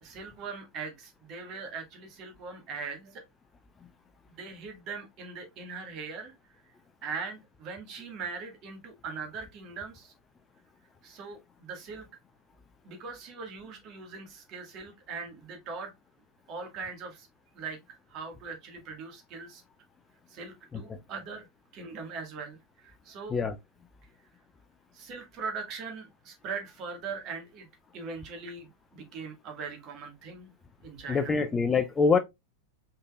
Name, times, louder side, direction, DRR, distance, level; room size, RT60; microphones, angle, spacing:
voice 1, 0.0-3.2 4.4-6.3 7.0-10.1 11.0-12.1 12.8-15.9 16.5-17.3 17.5-19.6 20.3-21.4 21.7-23.3 24.9-27.7 27.9-30.5 30.8-31.3, right 5 dB, 35° right, 1.7 m, -40 dB
voice 2, 31.1-32.2, left 5 dB, 15° left, 0.5 m, -25 dB
5.1 x 4.0 x 2.4 m
figure-of-eight pair, 90°, 0 cm